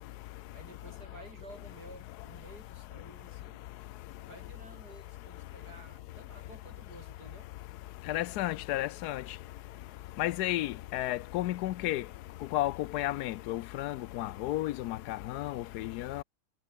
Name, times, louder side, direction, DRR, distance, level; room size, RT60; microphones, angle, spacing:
voice 1, 0.5-3.6 4.2-7.5, right 2 dB, 90° right, 7.6 m, -53 dB
voice 2, 8.1-9.2 10.2-12.0 12.5-16.2, left 15 dB, 85° left, 1.1 m, -32 dB
omnidirectional pair, 1.7 m